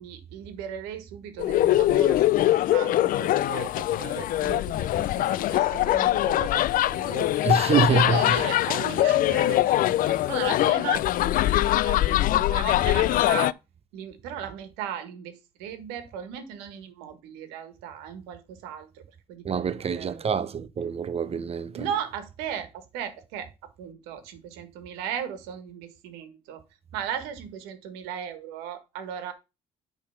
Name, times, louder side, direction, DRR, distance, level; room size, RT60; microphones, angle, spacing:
voice 1, 0.0-9.7 10.1-13.5 13.9-15.3 15.6-18.9 19.3-20.3 21.7-23.5 23.8-26.6 26.9-29.3, right 9 dB, 85° right, 1.5 m, -37 dB
sound 1, 1.4-13.5, left 14 dB, 60° left, 0.4 m, -23 dB
voice 2, 7.4-8.4 19.4-21.8, right 6 dB, 40° right, 0.8 m, -25 dB
8.6 x 3.6 x 5.7 m
supercardioid pair, 70°, 16 cm